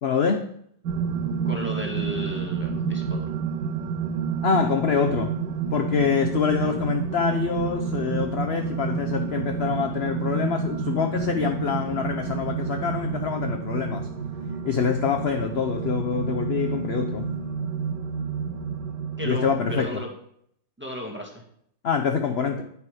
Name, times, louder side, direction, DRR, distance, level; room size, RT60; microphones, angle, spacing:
voice 1, 0.0-0.5 4.4-5.3 5.7-14.1 14.6-17.3 19.2-20.0 21.8-22.6, left 6 dB, 50° left, 5 dB, 0.8 m, -25 dB
sound 1, 0.8-19.8, right 6 dB, 70° right, 1.5 m, -29 dB
voice 2, 1.4-3.3 19.2-20.1 20.8-21.4, equal, 5° right, 0 dB, 1.6 m, -34 dB
10.0 x 8.3 x 5.0 m, 0.70 s
omnidirectional pair, 2.0 m